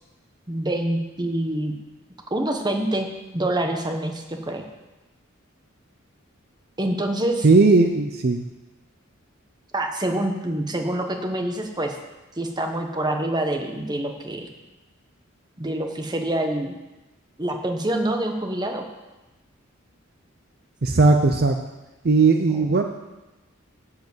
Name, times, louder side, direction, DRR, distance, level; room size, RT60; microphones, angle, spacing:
voice 1, 0.5-1.7 2.3-4.6 6.8-7.4 9.7-12.0 12.4-14.5 15.6-16.8 17.4-18.8 22.5-22.6, right 1 dB, 20° right, 3 dB, 1.1 m, -26 dB
voice 2, 7.4-8.4 20.8-21.6 22.0-22.8, right 3 dB, 50° right, 5 dB, 0.6 m, -17 dB
12.5 x 4.9 x 8.0 m, 1.1 s
head